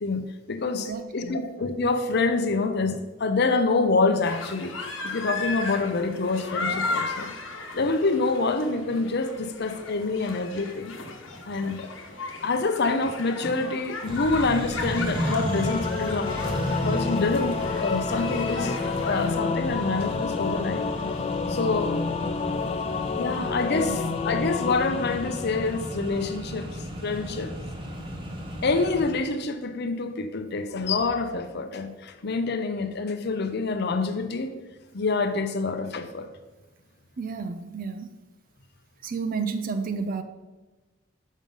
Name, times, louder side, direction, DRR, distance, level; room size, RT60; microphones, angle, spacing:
voice 1, 0.0-4.7 5.0-7.3 7.7-10.9 11.4-11.9 12.4-16.3 16.8-20.8 21.5-22.0 23.2-27.5 28.6-34.5 34.9-36.3, left 3 dB, 60° left, 9 dB, 0.7 m, -26 dB
voice 2, 0.7-1.4 23.7-24.0 37.2-38.1 39.0-40.2, right 5 dB, 45° right, 9 dB, 0.5 m, -31 dB
sound 1, 4.2-19.4, left 3 dB, 85° left, 1.1 m, -36 dB
Accelerating revving vroom, 14.1-29.1, equal, 25° right, 1.1 m, -34 dB
Singing / Musical instrument, 15.1-26.4, left 5 dB, 35° left, 0.3 m, -30 dB
6.3 x 5.4 x 5.4 m, 1.2 s
head